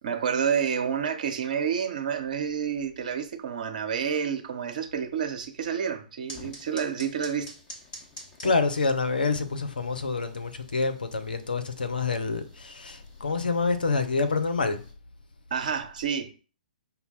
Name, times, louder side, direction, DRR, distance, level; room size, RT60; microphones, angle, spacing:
voice 1, 0.0-7.5 8.4-8.5 15.5-16.3, right 7 dB, 55° right, 0.8 m, -29 dB
sound 1, 6.3-14.9, left 1 dB, 20° left, 1.2 m, -49 dB
voice 2, 8.4-14.8, left 4 dB, 75° left, 0.6 m, -27 dB
5.4 x 2.1 x 4.2 m
figure-of-eight pair, 120°, 5 cm